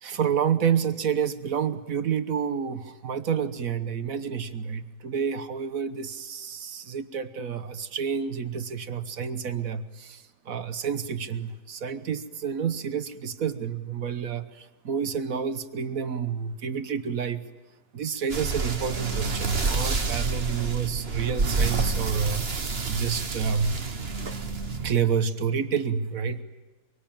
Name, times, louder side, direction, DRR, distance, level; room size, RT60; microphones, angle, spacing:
voice 1, 0.0-17.4 17.9-22.5 22.9-23.8 24.8-26.4, right 7 dB, 80° right, 11 dB, 1.5 m, -29 dB
sound 1, 18.3-24.9, right 4 dB, 45° right, 1.7 m, -28 dB
24.0 x 24.0 x 8.9 m, 1.2 s
omnidirectional pair, 1.5 m